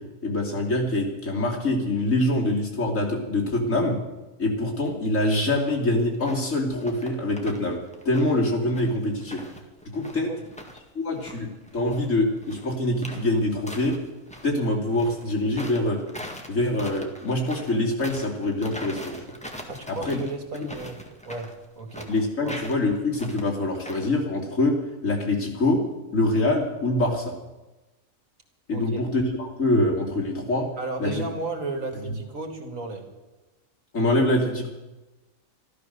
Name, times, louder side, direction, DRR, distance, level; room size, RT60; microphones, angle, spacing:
voice 1, 0.2-4.0 4.4-7.8 8.0-9.4 9.9-10.3 10.9-14.0 14.4-16.0 16.5-19.2 19.9-20.2 20.5-20.7 22.1-24.7 25.0-25.8 26.1-27.4 28.7-30.7 31.0-31.2 32.1-32.2 33.9-34.7, left 1 dB, 75° left, -2 dB, 3.4 m, -24 dB
sound 1, 6.1-6.5 6.8-7.7 7.9-10.8 11.1-14.5 14.9-24.2, equal, 5° left, 1.7 m, -41 dB
voice 2, 19.7-21.0 21.2-21.5 21.8-22.1 22.4-22.6 28.7-29.0 30.8-33.1, right 3 dB, 75° right, 3 dB, 2.5 m, -34 dB
13.5 x 12.5 x 6.7 m, 1.1 s
omnidirectional pair, 1.4 m